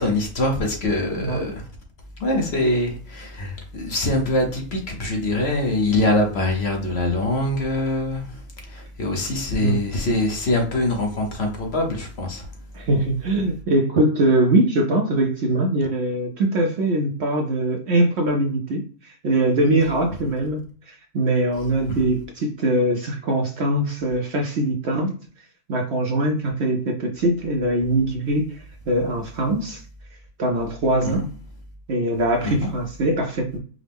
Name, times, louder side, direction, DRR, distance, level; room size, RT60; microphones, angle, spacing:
voice 1, 0.0-1.6 2.2-8.3 8.7-12.4 31.0-31.1 32.4-32.7, left 2 dB, 50° left, 1.0 m, -23 dB
voice 2, 1.1-1.6 9.6-9.8 12.7-25.2 25.7-29.8 30.4-31.3 31.9-33.6, right 1 dB, 60° right, 0.8 m, -22 dB
4.9 x 2.1 x 3.4 m
omnidirectional pair, 1.5 m